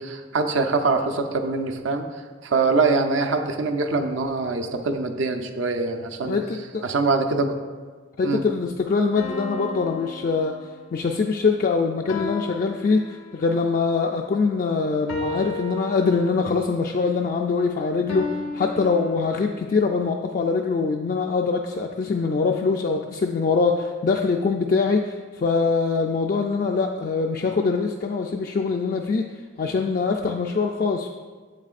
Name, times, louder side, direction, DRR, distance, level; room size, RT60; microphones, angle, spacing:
voice 1, 0.0-2.1 2.4-6.4 6.8-7.5 8.2-8.4, right 3 dB, 75° right, 5 dB, 0.5 m, -23 dB
voice 2, 6.2-7.0 8.2-10.5 10.9-29.3 29.6-31.1, left 4 dB, 45° left, 2 dB, 0.3 m, -23 dB
sound 1, 9.2-11.0 12.1-13.6 15.1-16.6 18.1-19.1, left 2 dB, 70° left, 0.7 m, -34 dB
7.9 x 7.4 x 2.5 m, 1.5 s
head